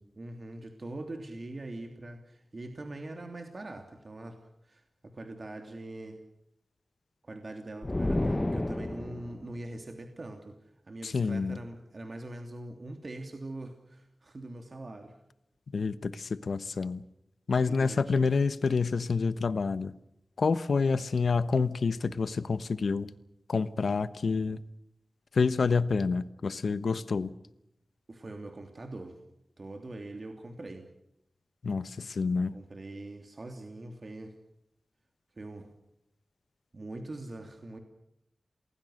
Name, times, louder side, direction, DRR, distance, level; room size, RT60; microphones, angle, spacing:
voice 1, 0.1-4.4 4.6-6.2 7.2-10.6 10.8-15.2 17.7-18.2 28.1-29.2 29.6-30.9 32.5-34.3 35.3-35.7 36.7-37.8, right 2 dB, 50° right, 5 dB, 3.1 m, -42 dB
sound 1, 7.8-9.4, left 1 dB, 25° left, 1.3 m, -30 dB
voice 2, 11.0-11.6 15.7-17.0 17.5-19.9 20.4-23.1 23.5-24.6 25.3-27.3 31.6-32.5, left 4 dB, 80° left, 15 dB, 1.1 m, -28 dB
28.5 x 20.0 x 6.5 m, 0.80 s
wide cardioid pair, 70°, 0 cm